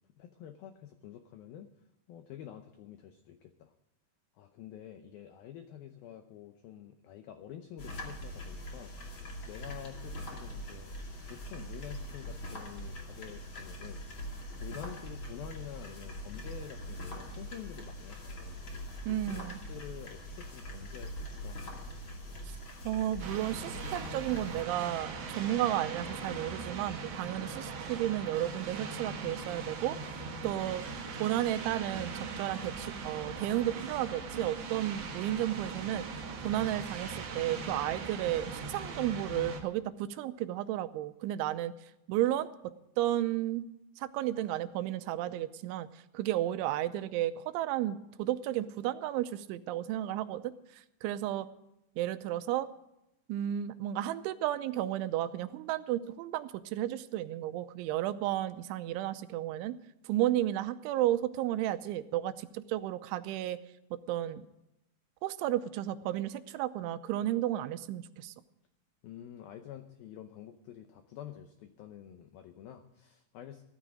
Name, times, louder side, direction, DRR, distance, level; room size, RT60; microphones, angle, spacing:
voice 1, 0.2-1.7 2.1-3.7 4.4-8.9 9.5-10.9 11.3-14.0 14.6-18.6 19.1-21.6 69.0-73.6, left 10 dB, 85° left, 7 dB, 2.1 m, -48 dB
sound 1, 7.8-24.6, equal, 35° left, 2.2 m, -43 dB
voice 2, 19.1-19.6 22.8-30.9 31.2-43.7 44.0-51.5 52.0-52.7 53.3-59.8 60.0-63.6 63.9-64.5 65.2-68.3, right 13 dB, 85° right, 12 dB, 3.1 m, -33 dB
sound 2, 23.2-39.6, right 4 dB, 60° right, 1.6 m, -40 dB
16.0 x 13.0 x 5.0 m, 0.87 s
omnidirectional pair, 5.4 m